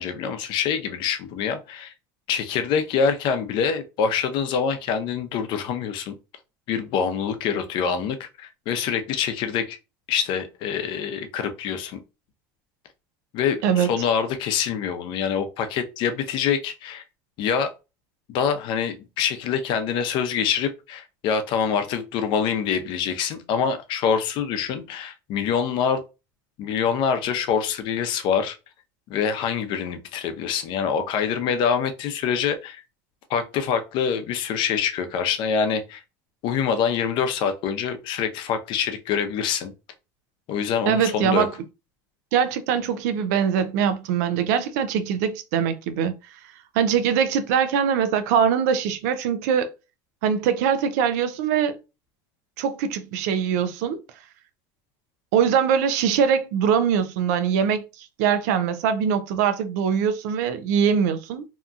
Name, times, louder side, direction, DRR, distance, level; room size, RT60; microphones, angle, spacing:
voice 1, 0.0-1.9 2.3-6.1 6.7-9.8 10.1-12.0 13.3-17.0 17.4-17.7 18.3-26.0 26.6-28.6 29.1-32.8 33.3-36.0 36.4-39.7 40.5-41.5, left 7 dB, 60° left, 0.6 m, -25 dB
voice 2, 40.9-41.5 42.3-46.1 46.7-49.7 50.2-51.8 52.6-54.0 55.3-61.4, right 7 dB, 80° right, 0.5 m, -22 dB
2.8 x 2.3 x 2.5 m
supercardioid pair, 85°, 9 cm